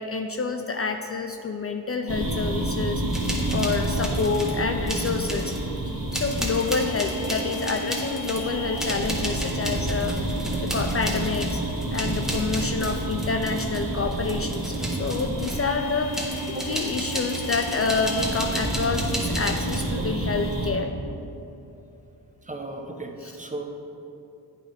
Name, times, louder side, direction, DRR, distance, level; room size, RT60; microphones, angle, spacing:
voice 1, 0.0-5.6 6.1-10.2 10.6-11.6 11.9-16.1 16.6-20.9 23.2-23.3, left 4 dB, 35° left, 5 dB, 0.4 m, -28 dB
sound 1, 2.1-20.7, right 1 dB, 55° right, 1.3 m, -29 dB
sound 2, 3.1-4.6 4.9-5.7 6.1-15.7 16.1-19.9, equal, ahead, 1.5 m, -34 dB
voice 2, 22.4-23.6, right 2 dB, 20° right, 3 dB, 0.9 m, -36 dB
9.0 x 5.4 x 3.4 m, 2.8 s
cardioid pair, 50°, 40 cm